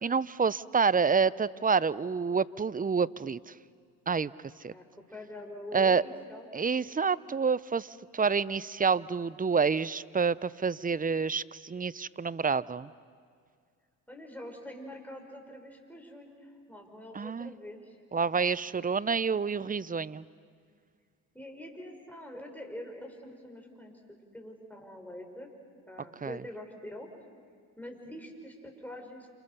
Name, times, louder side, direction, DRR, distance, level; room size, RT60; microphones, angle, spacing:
voice 1, 0.0-3.5 4.1-4.3 4.6-4.7 5.7-6.0 6.5-12.9 17.1-17.5 18.1-20.2 26.2-26.4, right 5 dB, 20° right, 19 dB, 0.7 m, -28 dB
voice 2, 4.7-6.5 14.1-17.9 18.7-18.9 21.3-25.5 25.9-27.1 27.8-29.3, left 1 dB, 5° left, 2 dB, 5.9 m, -45 dB
28.5 x 27.5 x 6.9 m, 2.1 s
supercardioid pair, 65°, 41 cm